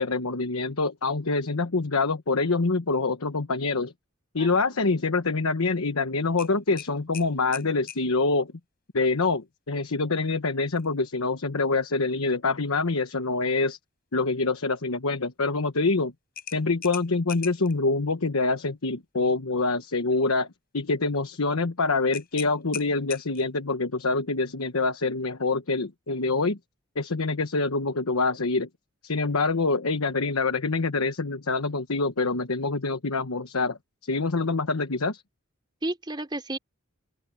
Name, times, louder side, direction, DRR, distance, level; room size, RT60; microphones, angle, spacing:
voice 1, 0.0-3.9 4.3-8.5 8.9-13.8 14.1-16.1 16.5-20.5 20.7-26.6 27.0-28.7 29.0-35.2, left 3 dB, 75° left, 1.1 m, -26 dB
voice 2, 4.4-4.8 35.8-36.6, right 1 dB, 20° right, 3.3 m, -33 dB
sound 1, 6.4-8.1 10.7-10.9 11.3-11.4 16.4-17.7 22.1-23.6, left 9 dB, 45° left, 7.8 m, -40 dB
open air
head